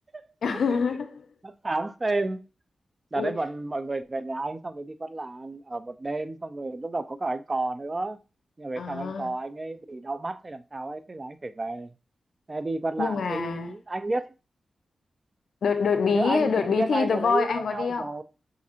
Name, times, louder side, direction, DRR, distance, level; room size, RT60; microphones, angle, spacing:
voice 1, 0.4-1.2 3.2-3.3 8.8-9.3 13.0-13.7 15.6-18.1, left 5 dB, 80° left, 0.4 m, -26 dB
voice 2, 1.4-2.4 3.1-8.2 8.6-11.9 12.5-14.3 16.1-18.2, right 2 dB, 40° right, 0.5 m, -31 dB
5.9 x 2.6 x 2.8 m
cardioid pair, 40°, 0 cm